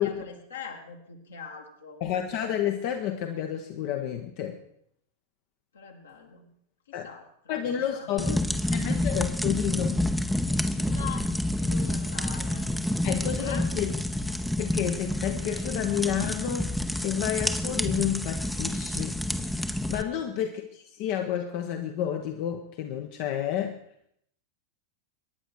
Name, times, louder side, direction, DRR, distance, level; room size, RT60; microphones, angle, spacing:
voice 1, 0.0-2.0 5.7-6.5 6.9-8.3 8.7-9.0 10.5-12.7 13.1-13.7 20.1-20.3, left 6 dB, 70° left, 1 dB, 2.7 m, -43 dB
voice 2, 2.0-4.6 6.9-7.1 7.5-8.4 8.7-10.0 13.0-13.9 14.6-19.2 19.5-23.8, left 10 dB, 45° left, 6 dB, 1.1 m, -30 dB
sound 1, 8.2-20.0, left 1 dB, ahead, 0.8 m, -28 dB
23.0 x 10.5 x 4.6 m, 0.70 s
figure-of-eight pair, 90°, 0 cm